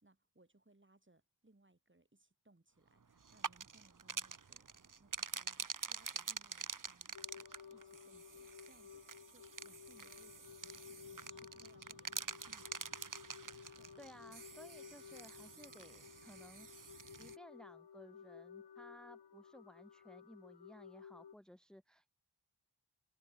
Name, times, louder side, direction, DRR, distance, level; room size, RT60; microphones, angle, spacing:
voice 1, 0.0-13.2 13.4-14.3, right 2 dB, 30° right, 3.9 m, -69 dB
sound 1, 3.2-17.4, right 5 dB, 50° right, 1.0 m, -47 dB
sound 2, 7.1-21.4, left 7 dB, 70° left, 0.9 m, -56 dB
voice 2, 13.5-16.9 17.1-22.1, equal, ahead, 1.4 m, -58 dB
wide cardioid pair, 70°, 42 cm